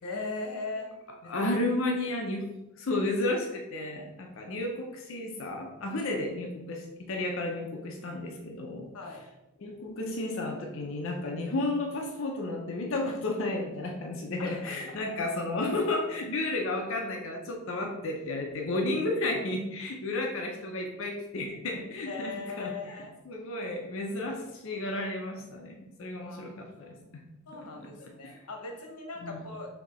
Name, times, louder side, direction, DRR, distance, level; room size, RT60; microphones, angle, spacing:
voice 1, 0.0-0.9 1.2-1.6 8.9-9.2 14.4-14.8 22.1-23.1 26.2-26.6 27.5-29.7, left 3 dB, 90° left, 3 dB, 0.9 m, -39 dB
voice 2, 1.3-2.5 2.8-8.9 9.6-23.0 23.3-27.2 27.8-28.4 29.2-29.4, left 2 dB, 60° left, 2 dB, 0.6 m, -32 dB
4.3 x 2.7 x 4.2 m, 0.97 s
head